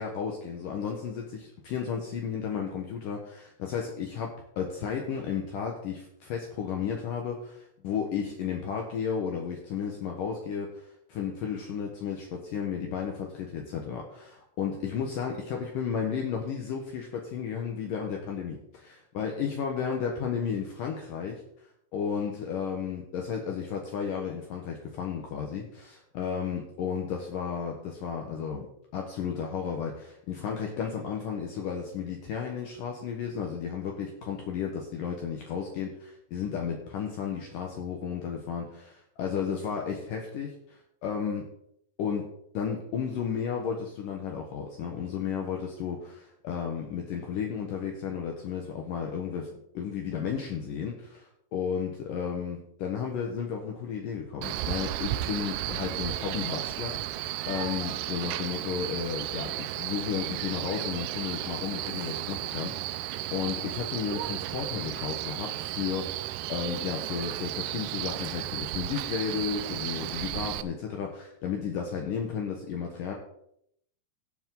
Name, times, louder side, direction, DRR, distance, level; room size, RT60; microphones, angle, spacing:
voice 1, 0.0-21.4 21.9-28.7 28.9-41.5 42.0-73.1, left 7 dB, 65° left, 1 dB, 2.7 m, -33 dB
Male speech man speaking, 54.4-70.6, right 14 dB, 80° right, 1.9 m, -34 dB
18.0 x 7.4 x 3.9 m, 0.72 s
omnidirectional pair, 4.4 m